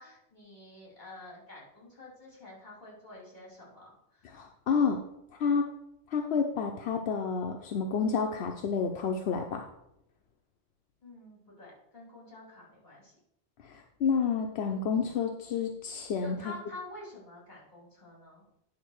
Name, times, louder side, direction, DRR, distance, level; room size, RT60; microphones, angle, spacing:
voice 1, 0.0-4.3 11.0-13.2 16.2-18.4, left 2 dB, 45° left, -4 dB, 3.0 m, -48 dB
voice 2, 4.3-5.0 5.4-5.7 6.1-9.6 13.6-16.5, left 6 dB, 85° left, 3 dB, 1.0 m, -29 dB
9.5 x 3.8 x 6.3 m, 0.81 s
omnidirectional pair, 1.1 m